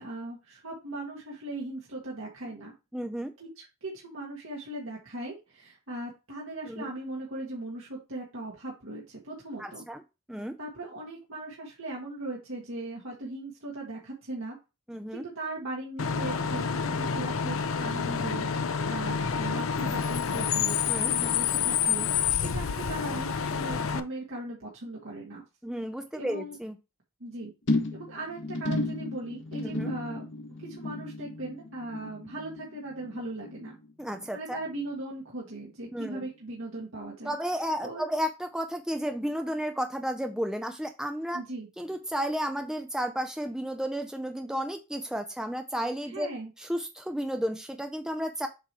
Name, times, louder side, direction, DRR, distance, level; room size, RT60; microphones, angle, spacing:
voice 1, 0.0-2.7 3.4-9.8 10.6-14.6 15.1-20.8 21.1-25.4 26.1-26.6 27.2-27.5 27.9-30.2 30.7-33.8 34.3-37.3 37.8-38.0 41.3-41.7 46.0-46.5, right 2 dB, 75° right, -3 dB, 1.6 m, -38 dB
voice 2, 2.9-3.3 6.7-6.9 9.6-10.0 10.3-10.6 14.9-15.2 20.9-21.1 25.6-26.7 29.6-29.9 34.0-34.6 35.9-36.3 37.2-41.4 41.8-46.3 46.6-48.5, equal, 5° right, 6 dB, 0.4 m, -32 dB
Bus / Idling / Screech, 16.0-24.0, left 7 dB, 75° left, 0.6 m, -28 dB
sound 1, 27.7-34.3 34.5-35.0 35.3-35.4, left 2 dB, 60° left, 1.0 m, -34 dB
7.4 x 3.0 x 4.6 m, 0.26 s
head